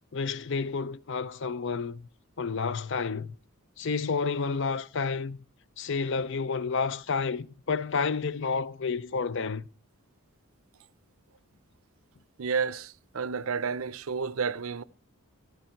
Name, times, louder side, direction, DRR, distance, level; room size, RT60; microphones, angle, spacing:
voice 1, 0.1-2.1 2.4-3.3 3.8-5.4 5.8-9.6, left 5 dB, 55° left, 0.6 m, -30 dB
voice 2, 12.4-14.8, right 5 dB, 70° right, 0.6 m, -31 dB
14.5 x 13.0 x 4.5 m
head